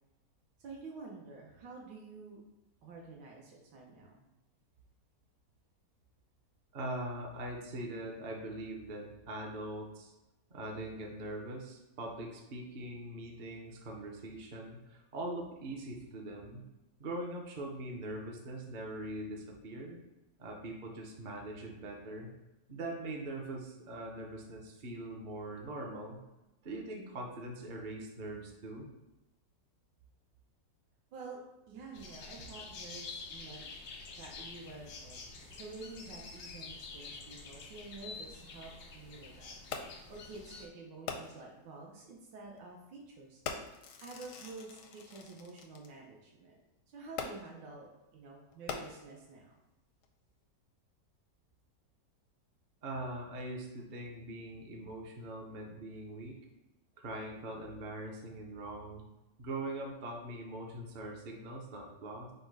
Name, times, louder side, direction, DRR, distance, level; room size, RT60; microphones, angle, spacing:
voice 1, 0.6-2.4 2.8-4.3 31.1-31.4 31.7-33.7 34.2-39.5 40.1-43.4 44.0-46.6 46.9-49.5, right 3 dB, 80° right, -2 dB, 1.4 m, -49 dB
voice 2, 6.7-10.1 10.5-16.6 17.0-20.0 20.4-22.3 22.7-26.2 26.6-28.9 52.8-56.4 57.0-59.0 59.4-62.3, right 1 dB, 50° right, -1 dB, 0.5 m, -42 dB
sound 1, 31.9-40.7, left 4 dB, 85° left, 1.5 m, -48 dB
Fireworks, 39.7-40.1 41.1-41.6 42.5-42.6 43.4-45.9 47.2-47.7 48.5-49.3 50.0-50.1, left 6 dB, 70° left, 0.8 m, -43 dB
5.2 x 2.2 x 4.6 m, 0.98 s
omnidirectional pair, 1.9 m